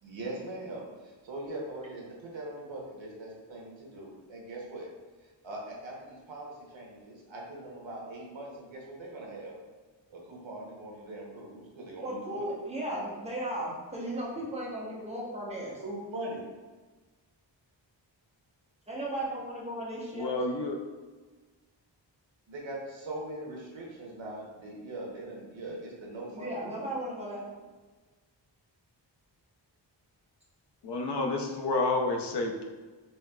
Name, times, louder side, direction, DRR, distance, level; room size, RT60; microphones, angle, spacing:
voice 1, 0.0-4.9 5.4-9.5 10.1-12.5 15.8-16.4 22.5-26.9, right 1 dB, 85° right, -2 dB, 1.0 m, -41 dB
voice 2, 12.0-15.8 18.9-20.3 26.3-27.4, right 1 dB, 15° right, -5 dB, 0.9 m, -35 dB
voice 3, 20.1-20.8 30.8-32.6, left 2 dB, 65° left, 2 dB, 0.6 m, -29 dB
4.4 x 3.1 x 2.3 m, 1.3 s
wide cardioid pair, 120°, 45 cm